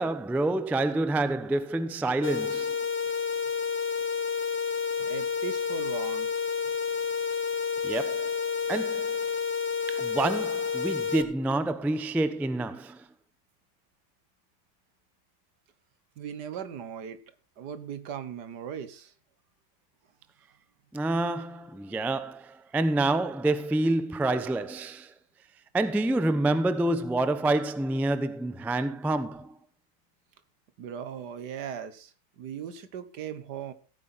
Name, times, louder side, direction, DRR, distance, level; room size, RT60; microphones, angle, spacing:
voice 1, 0.0-2.8 7.8-8.3 8.7-9.1 9.9-13.0 20.9-25.1 25.7-29.6, right 2 dB, ahead, 0.3 m, -27 dB
sound 1, 2.2-11.2, left 6 dB, 40° left, 1.2 m, -30 dB
voice 2, 5.0-6.3 16.2-17.2 17.6-19.1 30.8-33.7, right 8 dB, 80° right, 1.7 m, -38 dB
15.5 x 9.1 x 4.2 m
omnidirectional pair, 1.8 m